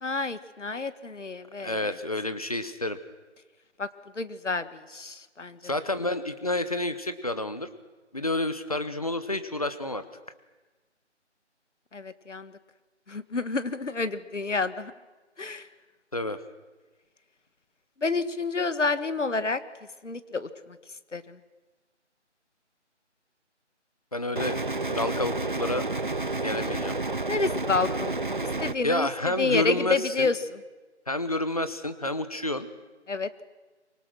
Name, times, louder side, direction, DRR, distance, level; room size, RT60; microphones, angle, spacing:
voice 1, 0.0-2.0 3.8-3.9 4.2-5.6 11.9-12.5 13.1-14.9 15.4-15.7 18.0-19.6 20.0-20.8 21.1-21.4 27.3-28.1 28.4-30.6 33.1-33.3, left 3 dB, 85° left, 13 dB, 1.7 m, -29 dB
voice 2, 1.6-3.0 5.6-7.7 8.1-10.0 16.1-16.4 24.1-24.6 24.9-25.8 26.3-27.0 28.8-30.3 31.1-32.7, left 1 dB, 30° left, 12 dB, 1.0 m, -29 dB
sound 1, 24.4-28.8, right 3 dB, 45° right, 0.7 m, -30 dB
24.5 x 24.0 x 6.3 m, 1.2 s
figure-of-eight pair, 180°, 36 cm